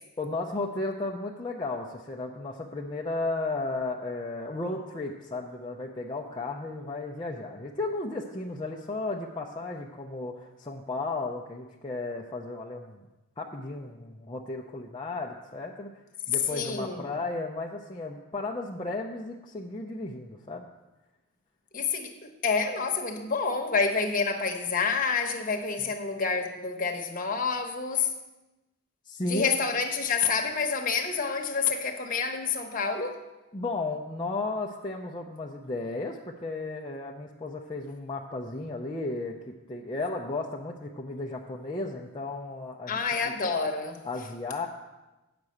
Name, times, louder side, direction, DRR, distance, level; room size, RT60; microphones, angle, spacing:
voice 1, 0.2-13.0 13.4-15.9 16.3-20.6 25.8-25.9 29.1-29.5 33.5-39.3 39.7-43.0 43.2-43.3 44.0-44.7, left 2 dB, 20° left, -2 dB, 0.6 m, -34 dB
voice 2, 16.5-17.0 21.7-28.1 29.3-33.2 42.9-44.0, left 5 dB, 40° left, 3 dB, 1.0 m, -28 dB
8.5 x 6.0 x 7.8 m, 1.1 s
head